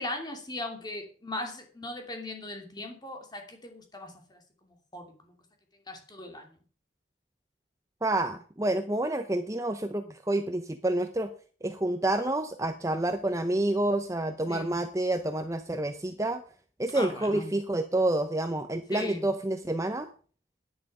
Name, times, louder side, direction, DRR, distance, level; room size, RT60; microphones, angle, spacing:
voice 1, 0.0-5.3 5.9-6.5 14.5-14.8 16.9-17.5 18.9-19.2, left 1 dB, 20° left, 3 dB, 2.7 m, -39 dB
voice 2, 8.0-11.3 11.6-16.4 16.8-20.1, right 1 dB, 15° right, 8 dB, 0.7 m, -28 dB
11.0 x 10.0 x 5.4 m, 0.40 s
head